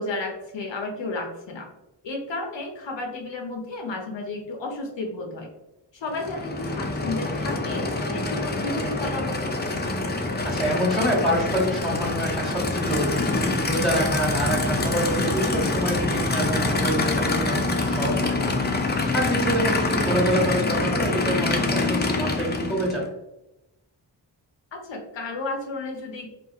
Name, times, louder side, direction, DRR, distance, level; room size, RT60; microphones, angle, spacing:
voice 1, 0.0-1.7 2.0-5.5 5.9-9.5 19.5-19.6 24.7-26.3, left 2 dB, 75° left, 2 dB, 0.6 m, -32 dB
Aircraft / Idling, 6.1-23.0, left 2 dB, 25° left, 0.4 m, -25 dB
voice 2, 10.4-13.2 13.6-18.5 18.9-23.0, equal, ahead, -4 dB, 1.1 m, -26 dB
2.4 x 2.4 x 2.7 m, 0.93 s
wide cardioid pair, 75°, 44 cm